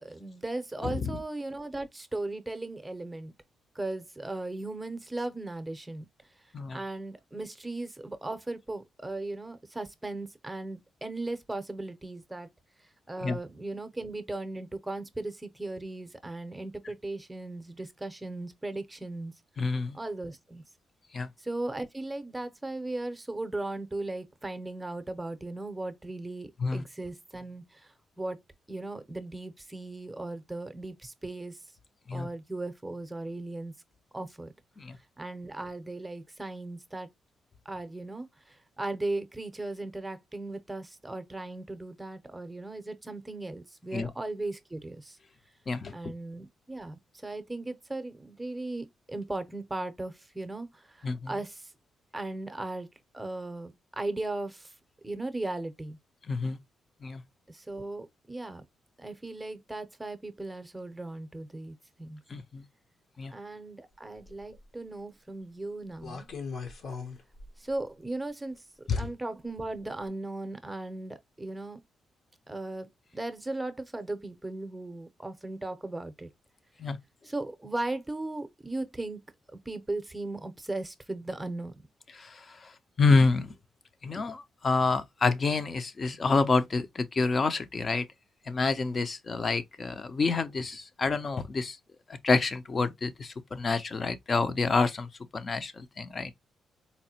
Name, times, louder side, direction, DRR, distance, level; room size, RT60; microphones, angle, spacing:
voice 1, 0.0-3.3 3.7-6.0 6.7-12.5 13.1-19.3 19.9-20.6 21.4-27.9 28.2-28.4 28.7-31.6 32.1-33.7 34.1-34.5 35.2-37.1 37.7-45.2 45.9-51.7 52.1-52.9 53.1-54.7 55.0-56.0 57.5-58.7 59.0-62.2 63.3-66.3 67.6-71.8 72.5-76.3 77.2-79.2 79.5-81.8, right 2 dB, 15° right, 0.6 m, -37 dB
voice 2, 0.8-1.2 6.5-6.8 13.2-13.4 19.6-20.0 21.1-21.3 26.6-26.8 32.1-32.3 34.8-35.0 43.9-44.1 45.7-45.9 51.0-51.3 56.3-56.6 57.0-57.2 62.3-62.6 63.2-63.3 68.9-69.0 76.8-77.0 82.1-82.4 83.0-83.5 84.0-88.0 88.5-91.8 92.2-96.3, left 4 dB, 40° left, 0.5 m, -28 dB
sound 1, 64.2-64.6 66.0-67.8 68.9-69.0 69.8-70.0, left 5 dB, 65° left, 0.9 m, -40 dB
4.1 x 2.1 x 2.8 m
cardioid pair, 85°, 0 cm